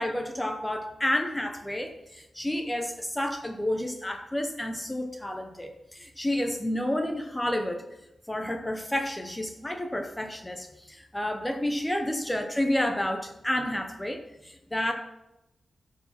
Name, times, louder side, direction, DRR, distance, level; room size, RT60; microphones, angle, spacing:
voice 1, 0.0-7.8 8.3-14.9, left 1 dB, 10° left, 5 dB, 0.8 m, -30 dB
13.5 x 4.8 x 5.8 m, 0.92 s
wide cardioid pair, 140°, 0 cm